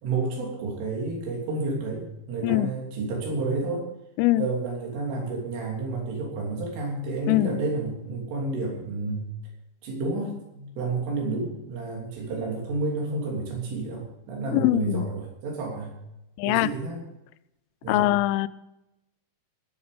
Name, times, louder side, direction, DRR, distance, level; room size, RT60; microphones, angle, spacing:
voice 1, 0.0-3.8 4.3-9.3 9.8-16.0 16.5-17.1 17.8-18.1, right 3 dB, 80° right, -1 dB, 5.7 m, -30 dB
voice 2, 7.3-7.6 14.5-15.1 16.4-16.7 17.9-18.5, left 16 dB, 90° left, 17 dB, 3.2 m, -22 dB
18.5 x 8.8 x 5.2 m, 0.91 s
omnidirectional pair, 5.7 m